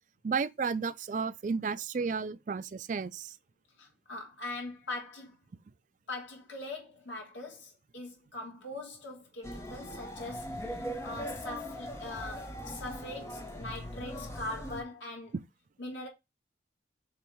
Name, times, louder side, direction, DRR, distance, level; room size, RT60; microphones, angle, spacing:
voice 1, 0.2-3.3, right 5 dB, 45° right, 0.3 m, -32 dB
voice 2, 3.8-5.4 6.1-10.5 11.0-15.3 15.8-16.1, left 2 dB, 85° left, 2.5 m, -41 dB
sound 1, 9.4-14.8, equal, 15° left, 0.9 m, -40 dB
6.8 x 3.1 x 4.6 m
head